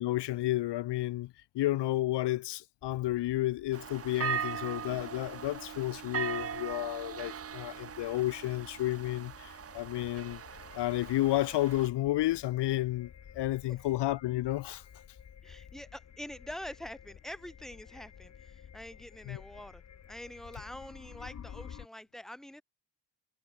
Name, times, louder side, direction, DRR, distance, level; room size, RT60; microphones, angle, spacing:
voice 1, 0.0-10.4 10.7-14.8 19.3-19.4, left 16 dB, 75° left, 0.8 m, -31 dB
sound 1, 2.8-21.9, left 8 dB, 40° left, 1.7 m, -53 dB
sound 2, 3.7-11.9, right 8 dB, 35° right, 1.2 m, -39 dB
voice 2, 15.4-19.8 20.1-22.6, left 1 dB, ahead, 1.3 m, -45 dB
wide cardioid pair, 175°, 42 cm